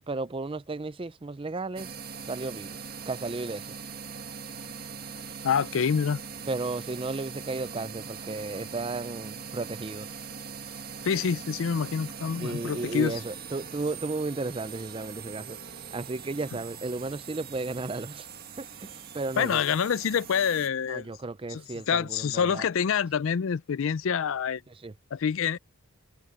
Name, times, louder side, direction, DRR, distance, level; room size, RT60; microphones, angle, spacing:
voice 1, 0.0-1.9 2.3-2.8 3.1-3.7 6.5-10.1 12.4-15.6 15.9-18.3 18.6-19.6 20.9-22.7 24.8-24.9, right 3 dB, 25° right, 0.4 m, -34 dB
sound 1, 1.8-20.7, right 6 dB, 40° right, 1.7 m, -41 dB
voice 2, 5.4-6.2 11.0-13.2 19.4-21.1 21.5-24.6 25.1-25.6, left 7 dB, 60° left, 0.4 m, -27 dB
head